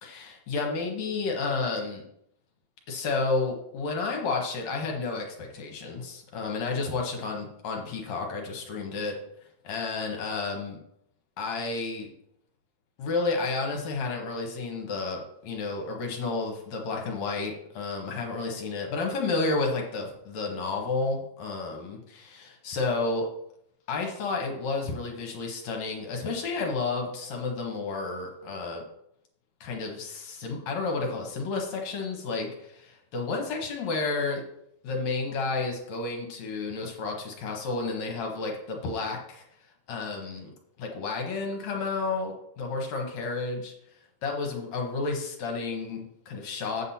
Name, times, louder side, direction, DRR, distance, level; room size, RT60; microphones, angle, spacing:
voice 1, 0.0-2.0 2.9-9.1 9.6-10.8 11.4-12.1 13.0-23.3 23.9-28.8 29.6-34.4 34.8-39.4 39.9-43.7 44.2-46.8, left 3 dB, 65° left, 1 dB, 2.5 m, -31 dB
8.2 x 7.6 x 4.2 m, 0.75 s
omnidirectional pair, 3.6 m